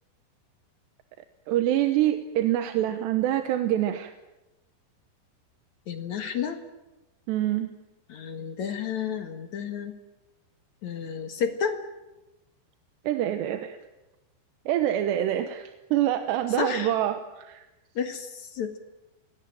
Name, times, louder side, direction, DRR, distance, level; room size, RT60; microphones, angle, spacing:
voice 1, 1.5-4.1 7.3-7.7 13.0-13.8 14.7-17.7, right 12 dB, 75° right, 8 dB, 3.1 m, -26 dB
voice 2, 5.9-6.6 8.1-9.9 10.8-11.8 16.6-16.9 18.0-18.8, left 7 dB, 55° left, 6 dB, 2.3 m, -31 dB
26.5 x 19.5 x 9.2 m, 1.0 s
omnidirectional pair, 5.2 m